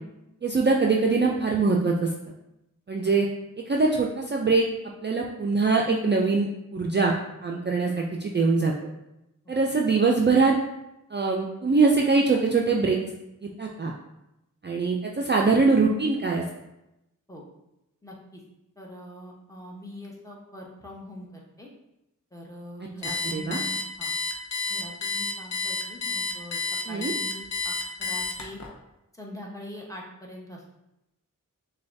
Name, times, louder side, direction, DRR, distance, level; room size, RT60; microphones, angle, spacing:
voice 1, 0.4-2.1 2.9-3.3 3.7-7.1 7.4-8.7 9.5-10.5 11.1-13.0 13.4-13.9 14.6-16.4 23.2-23.6 26.9-27.1, right 4 dB, 35° right, 0 dB, 0.4 m, -23 dB
voice 2, 18.0-18.4 18.8-21.7 22.3-24.1 24.7-28.6 29.1-30.8, equal, 10° left, -2 dB, 1.0 m, -43 dB
Alarm, 23.0-28.7, left 4 dB, 55° left, 0.8 m, -30 dB
6.5 x 2.3 x 2.6 m, 0.89 s
wide cardioid pair, 45°, 33 cm